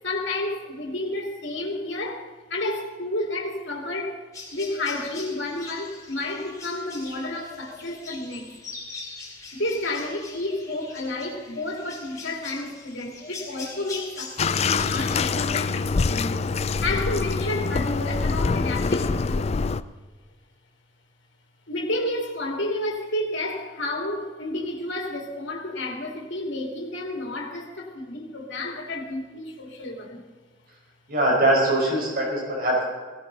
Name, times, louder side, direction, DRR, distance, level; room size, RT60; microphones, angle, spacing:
voice 1, 0.0-4.2 4.5-8.5 9.5-19.5 21.7-30.3, left 2 dB, 70° left, 1 dB, 2.6 m, -31 dB
sound 1, 4.3-15.4, left 4 dB, 15° left, 3.9 m, -41 dB
Bathtub (filling or washing), 14.4-19.8, left 4 dB, 30° left, 0.4 m, -25 dB
voice 2, 31.1-32.9, right 1 dB, 50° right, -2 dB, 5.2 m, -22 dB
17.5 x 16.5 x 4.0 m, 1.5 s
head